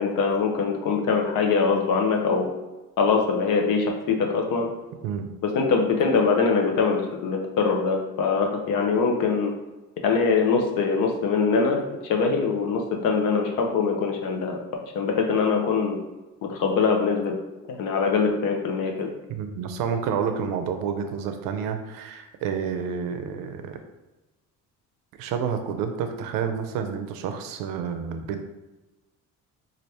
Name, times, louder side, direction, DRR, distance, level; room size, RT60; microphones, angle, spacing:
voice 1, 0.0-2.5 3.0-4.7 5.4-9.5 10.0-16.0 16.4-17.4 17.7-19.1, left 5 dB, 75° left, 2 dB, 0.6 m, -23 dB
voice 2, 19.3-23.8 25.2-28.4, right 7 dB, 90° right, 7 dB, 0.5 m, -29 dB
3.2 x 2.5 x 2.8 m, 1.1 s
cardioid pair, 115°, 33 cm